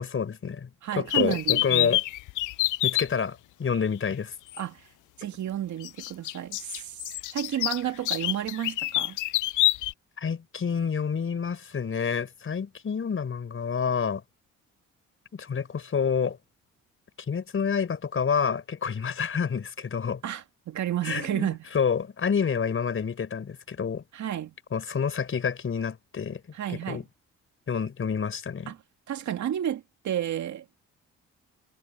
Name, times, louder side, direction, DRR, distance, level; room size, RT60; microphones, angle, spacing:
voice 1, 0.0-2.0 2.8-4.3 10.2-14.2 15.3-16.4 17.3-20.2 21.0-24.0 24.7-26.4 26.7-27.0 27.7-28.7, left 6 dB, 45° left, 5.0 m, -28 dB
voice 2, 0.8-1.9 4.6-4.9 5.2-7.0 7.3-9.2 20.2-21.6 24.1-24.5 26.5-27.0 28.7-28.8 29.1-30.6, right 11 dB, 70° right, 2.4 m, -31 dB
sound 1, 1.1-3.1 4.5-4.6 5.8-9.9, left 17 dB, 80° left, 0.6 m, -26 dB
cardioid pair, 90°, 30 cm